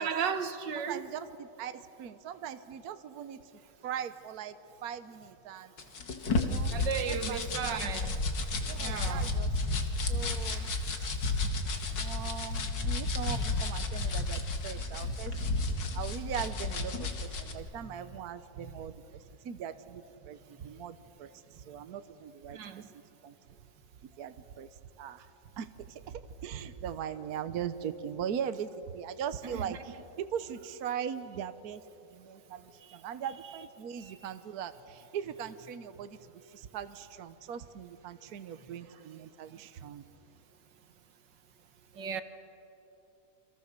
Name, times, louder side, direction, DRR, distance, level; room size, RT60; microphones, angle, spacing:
voice 1, 0.0-1.1 6.7-8.2 8.8-9.4 9.8-9.9 10.4-10.6 11.3-11.5 22.5-22.8 29.5-29.8 34.0-34.1 42.0-42.2, right 7 dB, 85° right, 1.9 m, -35 dB
voice 2, 0.8-3.4 3.8-4.6 4.8-5.7 6.3-6.7 7.0-7.9 8.6-10.7 11.0-11.1 12.0-15.3 15.9-22.6 22.9-23.3 24.1-24.7 25.0-25.3 25.6-31.8 32.1-40.0, right 8 dB, 65° right, 1.3 m, -40 dB
sound 1, 5.8-17.5, left 2 dB, 90° left, 2.6 m, -32 dB
28.5 x 26.5 x 6.7 m
omnidirectional pair, 1.9 m